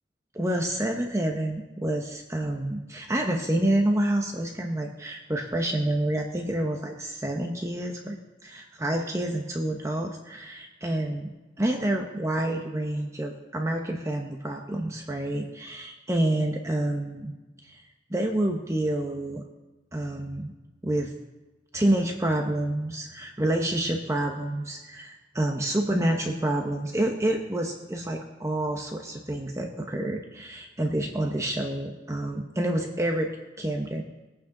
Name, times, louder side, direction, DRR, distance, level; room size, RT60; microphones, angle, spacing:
voice 1, 0.3-8.2 8.4-11.3 11.6-17.3 17.6-19.4 19.9-20.5 20.8-21.1 21.7-33.3 33.6-34.0, right 1 dB, 15° right, 2 dB, 0.9 m, -28 dB
20.0 x 8.7 x 3.8 m, 1.1 s
head